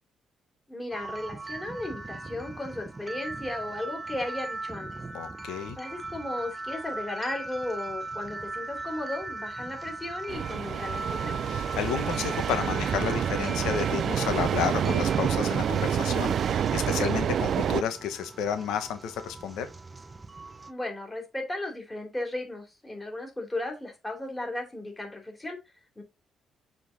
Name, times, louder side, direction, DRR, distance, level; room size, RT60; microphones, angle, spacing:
voice 1, 0.7-4.9 5.8-11.4 20.7-25.6 26.0-26.1, left 2 dB, 15° left, 2.7 m, -35 dB
sound 1, 0.9-20.7, right 2 dB, 20° right, 0.7 m, -39 dB
voice 2, 5.1-5.8 11.5-19.7, left 8 dB, 90° left, 0.9 m, -31 dB
sound 2, 10.3-17.8, right 8 dB, 60° right, 0.4 m, -28 dB
6.8 x 3.8 x 4.0 m
cardioid pair, 90°, 0 cm